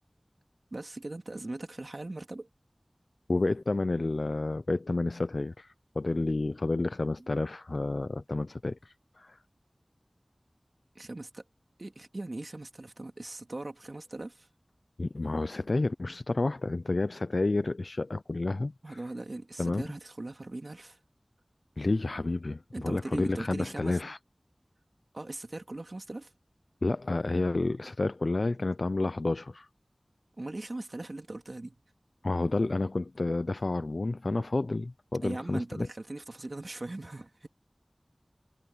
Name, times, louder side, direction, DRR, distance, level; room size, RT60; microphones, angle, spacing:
voice 1, 0.7-2.5 7.2-7.3 10.9-11.4 11.8-14.5 18.8-21.0 22.7-24.0 25.1-26.3 30.4-31.8 35.2-37.5, right 2 dB, 60° right, 2.7 m, -40 dB
voice 2, 3.3-9.4 15.0-19.0 19.6-19.8 21.8-24.2 26.8-29.7 32.2-35.9, left 2 dB, 75° left, 0.5 m, -30 dB
wide cardioid pair, 40°, 0 cm